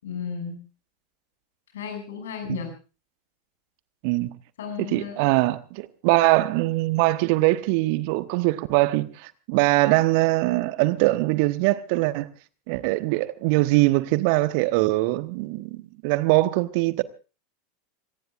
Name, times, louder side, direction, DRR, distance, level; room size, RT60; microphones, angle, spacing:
voice 1, 0.0-0.6 1.7-2.7 4.6-5.2, left 7 dB, 65° left, 6.6 m, -34 dB
voice 2, 4.0-4.3 4.8-12.3 12.7-17.0, right 19 dB, 50° right, 1.1 m, -22 dB
26.0 x 19.0 x 2.5 m
figure-of-eight pair, 85°, 0 cm